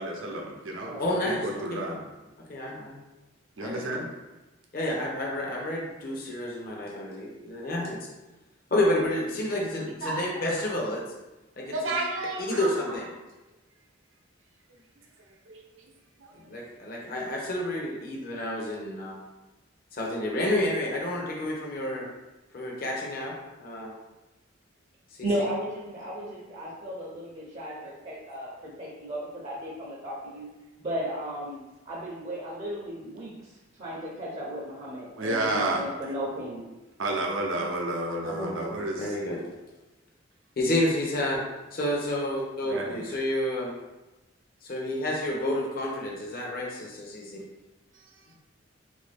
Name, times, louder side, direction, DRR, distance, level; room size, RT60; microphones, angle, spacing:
voice 1, 0.0-2.0 3.6-4.1 9.8-10.4 11.7-12.7 15.5-15.6 16.2-16.3 35.2-35.8 37.0-39.2 42.7-42.9, right 2 dB, 85° right, 0 dB, 0.7 m, -31 dB
voice 2, 1.0-2.0 2.5-3.0 3.6-3.8 4.7-8.0 8.7-11.0 11.6-11.9 12.5-13.1 16.5-19.2 19.9-22.1 22.5-23.9 25.2-25.3 38.2-39.4 40.6-41.4 41.7-43.7 44.6-47.4, left 1 dB, 50° left, -2 dB, 0.6 m, -30 dB
voice 3, 25.2-30.5 30.8-31.6 31.9-33.3 33.8-36.6, equal, 35° right, -4 dB, 0.6 m, -34 dB
3.4 x 2.6 x 3.4 m, 1.0 s
head